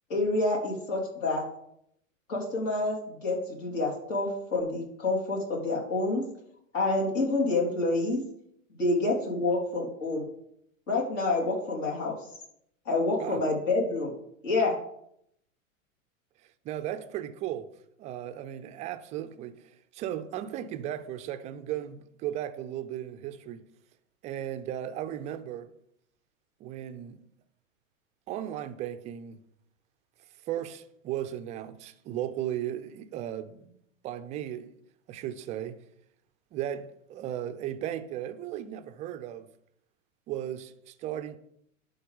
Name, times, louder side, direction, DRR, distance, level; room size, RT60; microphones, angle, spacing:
voice 1, 0.1-1.4 2.3-6.2 6.7-8.2 8.8-10.2 10.9-12.1 12.9-14.1 14.4-14.8, left 2 dB, 65° left, 3.7 m, -28 dB
voice 2, 16.6-17.7 18.0-23.6 24.2-25.7 26.6-27.2 28.3-29.4 30.5-33.8 34.0-34.7 35.1-35.8 36.5-39.5 40.3-41.4, right 11 dB, 20° right, 0.3 m, -36 dB
11.5 x 4.0 x 5.3 m
hypercardioid pair, 105°, 40 cm